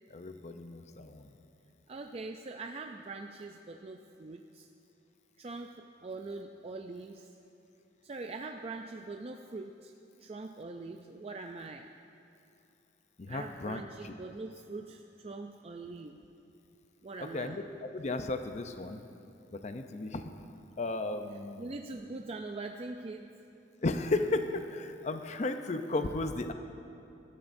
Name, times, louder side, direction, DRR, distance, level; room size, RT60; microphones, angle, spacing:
voice 1, 0.1-1.3 13.2-14.1 17.3-19.0 19.5-20.2 20.8-21.7 23.8-26.5, left 2 dB, 40° left, 7 dB, 0.6 m, -34 dB
voice 2, 1.9-4.7 5.4-7.3 8.0-9.9 10.2-11.9 13.3-16.2 17.0-17.6 21.6-23.3, right 3 dB, 35° right, 4 dB, 0.4 m, -43 dB
18.5 x 13.0 x 2.6 m, 2.7 s
head